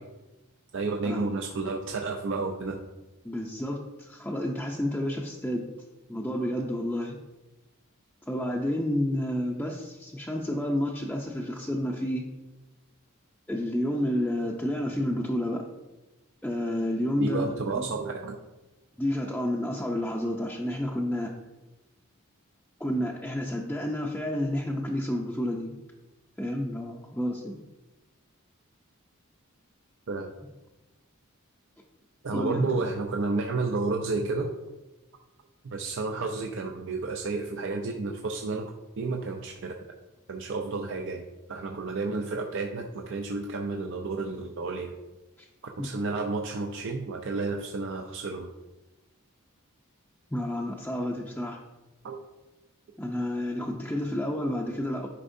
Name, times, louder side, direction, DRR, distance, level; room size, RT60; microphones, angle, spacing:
voice 1, 0.7-2.8 17.2-18.3 30.1-30.3 32.2-34.5 35.6-38.7 39.0-39.7 40.3-41.2 41.5-44.9 45.8-48.5 52.0-52.2, right 3 dB, 60° right, 2 dB, 0.5 m, -31 dB
voice 2, 3.2-5.7 6.1-7.2 8.3-12.3 13.5-15.6 16.4-17.9 19.0-21.3 22.8-25.8 26.4-27.6 32.3-32.8 45.8-45.9 50.3-51.6 53.0-55.1, left 1 dB, 5° left, -3 dB, 0.5 m, -30 dB
9.9 x 5.3 x 2.6 m, 1.1 s
head